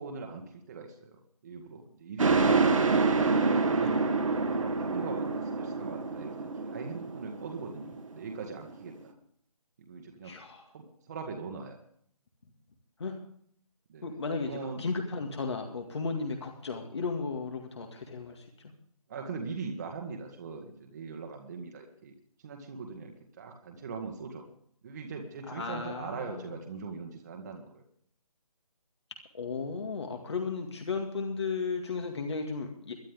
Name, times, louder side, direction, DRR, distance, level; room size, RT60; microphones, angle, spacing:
voice 1, 0.0-3.0 4.5-9.1 9.9-10.3 10.7-11.8 13.9-14.1 14.5-14.8 19.1-22.1 22.4-24.4 24.8-27.8, right 4 dB, 30° right, 2 dB, 1.8 m, -41 dB
sound 1, 2.2-8.9, right 4 dB, 55° right, 2.0 m, -27 dB
voice 2, 10.2-10.6 13.0-13.1 14.0-18.4 25.5-26.5 29.3-32.9, left 4 dB, 45° left, 3 dB, 2.1 m, -35 dB
23.0 x 11.0 x 3.6 m, 0.64 s
figure-of-eight pair, 155°, 19 cm